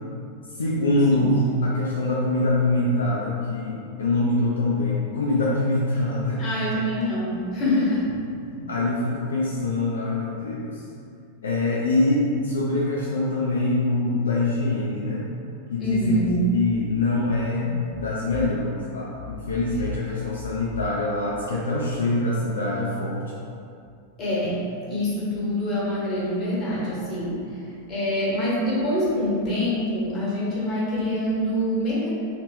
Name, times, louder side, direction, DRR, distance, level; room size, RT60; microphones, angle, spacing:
voice 1, 0.6-6.4 8.5-10.8 11.4-15.3 15.7-16.2 16.5-17.7 18.0-23.2, left 2 dB, 70° left, -5 dB, 0.4 m, -24 dB
voice 2, 6.4-8.1 15.8-16.5 24.2-27.6 27.9-32.1, equal, 30° left, -7 dB, 1.4 m, -25 dB
3.2 x 2.8 x 3.4 m, 2.5 s
figure-of-eight pair, 90°, 0 cm